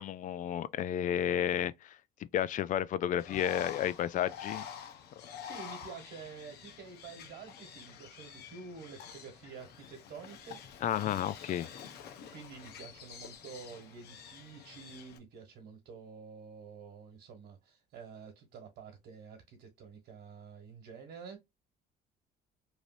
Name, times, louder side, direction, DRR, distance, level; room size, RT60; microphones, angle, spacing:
voice 1, 0.0-2.0 2.3-4.6 10.8-11.7, left 10 dB, 50° left, 0.4 m, -32 dB
Bird, 3.2-15.2, left 8 dB, 75° left, 0.8 m, -48 dB
voice 2, 5.2-10.6 12.3-21.4, right 5 dB, 75° right, 1.4 m, -49 dB
3.2 x 2.6 x 2.5 m
cardioid pair, 110°, 17 cm